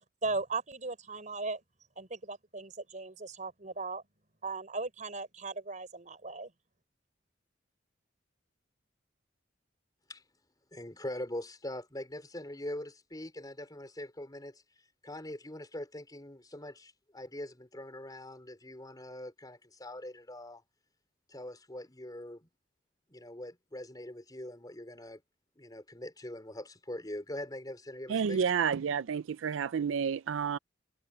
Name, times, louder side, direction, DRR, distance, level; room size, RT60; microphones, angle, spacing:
voice 1, 0.2-1.6 2.0-4.0 4.4-6.5, right 3 dB, 40° right, 5.1 m, -37 dB
voice 2, 10.7-14.6 15.0-20.6 21.3-22.5 23.1-25.2 25.6-28.4, left 1 dB, 20° left, 4.2 m, -43 dB
voice 3, 28.1-30.6, right 7 dB, 85° right, 0.4 m, -30 dB
head